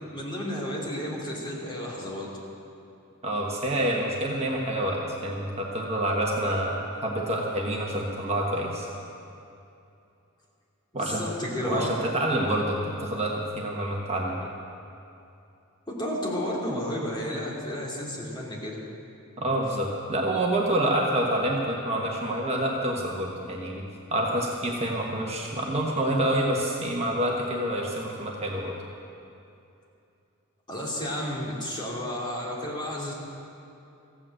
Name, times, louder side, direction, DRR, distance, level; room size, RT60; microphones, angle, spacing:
voice 1, 0.1-2.3 10.9-11.9 15.9-18.8 30.7-33.1, left 1 dB, 20° left, -4 dB, 2.8 m, -32 dB
voice 2, 3.2-8.9 10.9-11.2 11.6-14.5 19.4-28.7, right 1 dB, 30° right, -2 dB, 1.3 m, -27 dB
15.0 x 8.8 x 7.8 m, 2.7 s
head